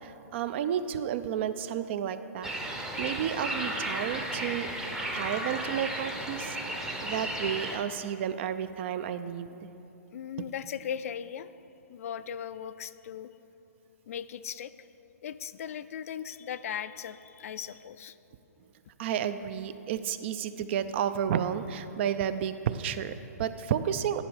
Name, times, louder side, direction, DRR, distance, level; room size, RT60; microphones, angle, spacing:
voice 1, 0.0-4.7 5.1-9.6 19.0-24.2, right 9 dB, 45° right, 12 dB, 0.4 m, -32 dB
sound 1, 2.4-7.8, right 1 dB, 5° right, 0.7 m, -34 dB
voice 2, 10.1-11.5 11.9-13.3 14.1-14.9 15.2-18.2, left 9 dB, 65° left, 13 dB, 0.4 m, -38 dB
11.0 x 5.2 x 4.9 m, 3.0 s
hypercardioid pair, 135°, 8 cm